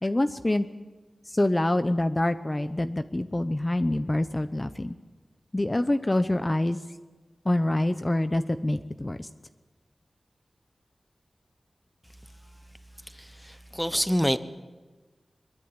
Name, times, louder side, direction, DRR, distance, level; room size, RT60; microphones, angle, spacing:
voice 1, 0.0-0.7 1.3-4.9 5.5-6.8 7.4-9.3, left 1 dB, 25° left, 10 dB, 0.9 m, -26 dB
voice 2, 13.2-14.4, equal, 5° left, 12 dB, 1.1 m, -27 dB
23.5 x 22.5 x 9.0 m, 1.3 s
wide cardioid pair, 90°, 0 cm